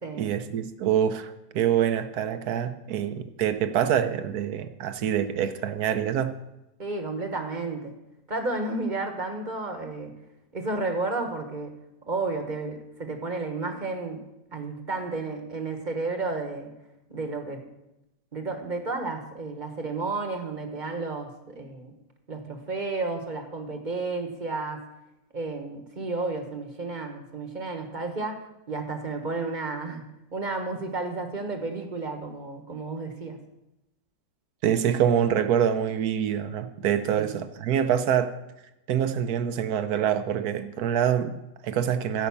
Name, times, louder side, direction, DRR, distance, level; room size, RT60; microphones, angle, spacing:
voice 1, 0.2-6.3 34.6-38.3 38.9-42.3, right 9 dB, 65° right, 10 dB, 1.2 m, -25 dB
voice 2, 6.8-7.9 8.3-10.1 10.5-11.7 12.1-14.2 14.5-16.7 17.1-17.6 18.3-21.9 22.3-24.8 25.3-28.4 28.7-30.0 30.3-33.4 37.1-37.3, right 3 dB, 30° right, 5 dB, 1.2 m, -32 dB
15.0 x 5.4 x 7.1 m, 0.92 s
omnidirectional pair, 1.9 m